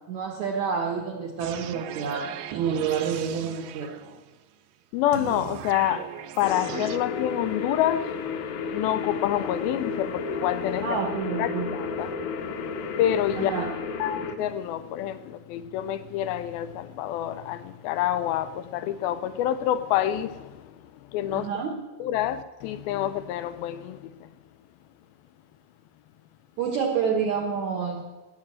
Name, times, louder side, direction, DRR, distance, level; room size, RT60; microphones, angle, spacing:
voice 1, 0.1-3.9 10.8-11.7 13.4-13.7 21.3-21.8 26.6-28.0, right 6 dB, 65° right, 1.9 m, -28 dB
sound 1, 1.4-4.4 5.1-7.0, right 11 dB, 85° right, 2.0 m, -38 dB
voice 2, 4.9-11.0 11.4-13.5 14.0-21.6 22.0-24.4, left 11 dB, 85° left, 2.1 m, -28 dB
sound 2, 6.4-14.4, left 5 dB, 65° left, 2.6 m, -32 dB
17.0 x 9.0 x 7.6 m
omnidirectional pair, 4.9 m